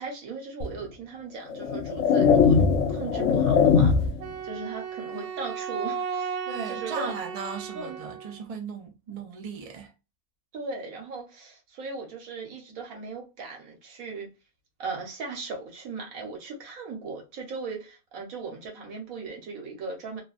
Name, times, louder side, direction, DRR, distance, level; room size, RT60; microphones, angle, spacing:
voice 1, 0.0-2.6 2.9-4.1 4.4-6.4 6.7-7.1 7.7-8.0 10.5-14.3 14.8-20.2, right 4 dB, 65° right, 1.4 m, -37 dB
sound 1, 0.6-0.8 1.5-4.3, left 6 dB, 65° left, 0.9 m, -21 dB
Wind instrument woodwind instrument, 4.2-8.5, right 7 dB, 80° right, 1.2 m, -35 dB
voice 2, 6.5-9.9, right 5 dB, 45° right, 0.4 m, -37 dB
3.1 x 2.2 x 2.4 m
omnidirectional pair, 1.6 m